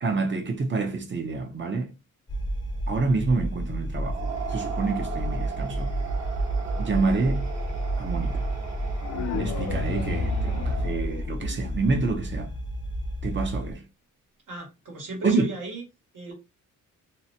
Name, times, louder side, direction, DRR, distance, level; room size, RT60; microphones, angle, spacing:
voice 1, 0.0-1.9 2.9-5.9 6.8-7.5 8.0-8.5 9.3-12.5 13.2-13.8 15.2-15.5, right 3 dB, 35° right, 0.7 m, -27 dB
sound 1, 2.3-13.7, right 1 dB, 15° left, 0.6 m, -31 dB
sound 2, 4.0-11.2, right 5 dB, 55° right, 1.3 m, -38 dB
sound 3, 9.0-12.0, left 4 dB, 55° left, 0.4 m, -31 dB
voice 2, 14.5-15.8 16.1-16.3, right 2 dB, 70° right, 1.4 m, -36 dB
2.8 x 2.1 x 2.7 m
cardioid pair, 105°, 32 cm